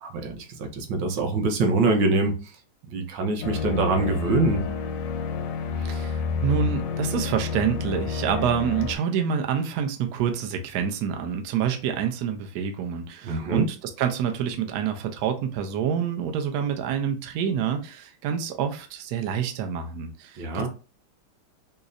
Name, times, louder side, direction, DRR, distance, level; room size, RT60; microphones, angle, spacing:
voice 1, 0.0-2.4 2.9-4.6 13.2-13.7 20.4-20.7, right 3 dB, 70° right, 1.2 m, -24 dB
sound 1, 3.4-9.0, left 5 dB, 75° left, 1.1 m, -29 dB
voice 2, 5.8-20.7, right 8 dB, 90° right, 0.8 m, -27 dB
5.1 x 2.0 x 2.5 m
omnidirectional pair, 2.3 m